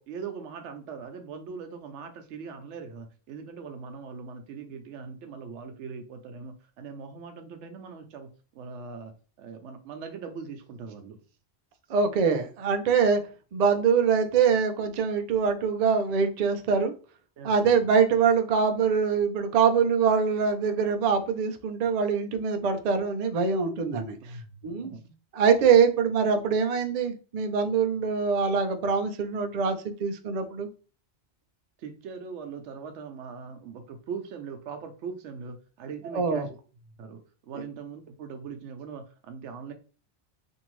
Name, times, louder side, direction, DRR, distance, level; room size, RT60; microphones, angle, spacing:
voice 1, 0.0-11.2 17.4-17.9 24.2-25.1 31.8-36.5 37.0-39.7, right 5 dB, 85° right, 0.9 m, -41 dB
voice 2, 11.9-13.2 13.5-16.9 17.4-24.2 24.6-24.9 25.3-30.7 36.0-36.5, right 6 dB, 65° right, 0.4 m, -24 dB
2.7 x 2.6 x 3.0 m
omnidirectional pair, 1.2 m